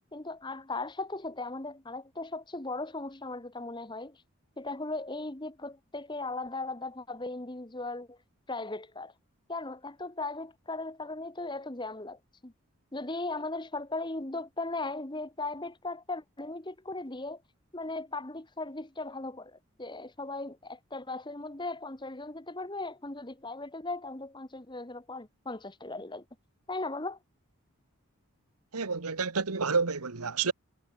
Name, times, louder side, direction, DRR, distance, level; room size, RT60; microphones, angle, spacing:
voice 1, 0.1-4.2 4.6-8.2 8.5-9.1 9.5-12.5 12.9-17.4 17.7-26.2 26.7-27.2, left 2 dB, 20° left, 1.2 m, -37 dB
voice 2, 28.7-30.5, right 4 dB, 85° right, 1.4 m, -29 dB
head